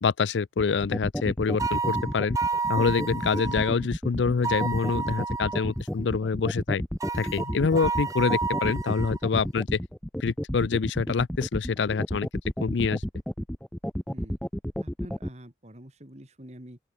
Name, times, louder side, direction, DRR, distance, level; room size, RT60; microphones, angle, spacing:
voice 1, 0.0-2.4 2.7-6.8 7.1-9.8 10.2-12.3 12.6-13.0, left 5 dB, 90° left, 0.5 m, -26 dB
sound 1, 0.6-15.3, equal, 5° left, 0.8 m, -31 dB
sound 2, 1.6-3.7 4.4-5.7 7.0-9.2, right 4 dB, 20° right, 0.4 m, -30 dB
voice 2, 14.8-16.8, right 1 dB, 40° right, 3.6 m, -46 dB
open air
head